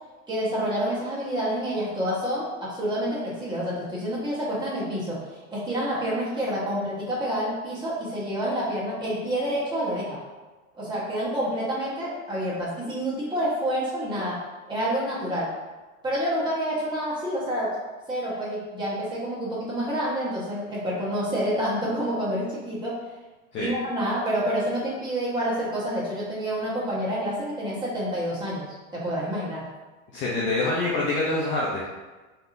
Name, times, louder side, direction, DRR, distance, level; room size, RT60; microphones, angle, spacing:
voice 1, 0.3-10.2 10.7-14.4 14.7-15.5 16.0-17.7 18.1-23.0 23.6-29.6, equal, 10° right, -8 dB, 1.1 m, -28 dB
voice 2, 30.1-31.9, left 2 dB, 30° left, -5 dB, 0.5 m, -25 dB
3.4 x 2.7 x 2.5 m, 1.2 s
hypercardioid pair, 115°, 42 cm